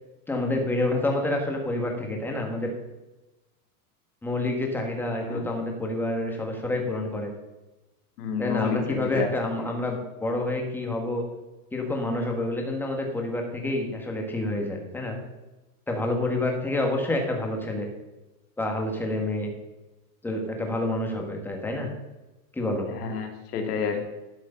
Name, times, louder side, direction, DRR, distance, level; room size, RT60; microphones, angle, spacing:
voice 1, 0.3-2.7 4.2-7.3 8.4-11.2 11.7-15.2 15.9-17.9 18.6-19.5 20.2-21.9 22.5-22.9, left 2 dB, 5° left, 2 dB, 1.4 m, -28 dB
voice 2, 5.1-5.5 8.2-9.3 9.6-9.7 23.0-24.0, left 6 dB, 85° left, 5 dB, 2.2 m, -30 dB
12.0 x 6.4 x 5.5 m, 1.1 s
supercardioid pair, 165°, 45 cm